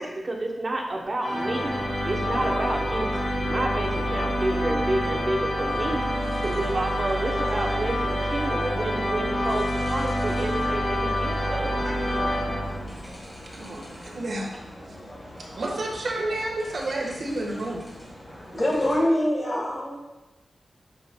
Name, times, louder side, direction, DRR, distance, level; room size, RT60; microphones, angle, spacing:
voice 1, 0.0-3.1 3.4-6.0 6.4-11.8 15.6-15.8, right 2 dB, 30° right, 0 dB, 0.8 m, -30 dB
sound 1, 1.2-13.2, equal, 70° left, 2.0 m, -27 dB
sound 2, 5.7-19.0, equal, 10° left, 1.7 m, -43 dB
voice 2, 13.5-14.5 14.9-15.0 15.4-17.9, right 1 dB, 60° right, -1 dB, 1.3 m, -31 dB
voice 3, 18.5-20.0, left 1 dB, 30° left, -2 dB, 1.6 m, -24 dB
8.4 x 5.4 x 2.2 m, 1.0 s
wide cardioid pair, 160°, 0 cm